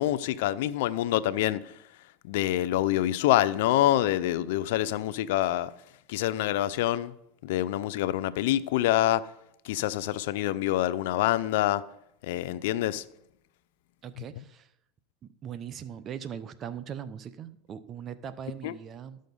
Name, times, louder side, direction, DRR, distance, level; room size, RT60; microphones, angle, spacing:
voice 1, 0.0-1.7 2.3-5.7 6.1-7.1 7.4-9.3 9.6-11.8 12.2-13.0 18.6-18.7, left 14 dB, 75° left, 0.5 m, -26 dB
voice 2, 14.0-14.7 15.2-19.2, right 8 dB, 35° right, 0.7 m, -40 dB
13.0 x 6.4 x 5.4 m
supercardioid pair, 110°, 0 cm